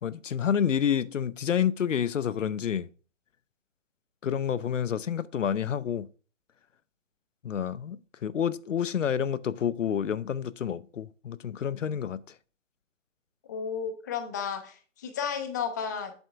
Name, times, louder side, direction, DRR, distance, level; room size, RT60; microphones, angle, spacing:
voice 1, 0.0-2.9 4.2-6.1 7.4-8.0 8.2-12.2, left 8 dB, 75° left, 0.6 m, -28 dB
voice 2, 13.5-16.1, left 7 dB, 15° left, 0.5 m, -33 dB
7.9 x 3.5 x 5.9 m
figure-of-eight pair, 140°, 38 cm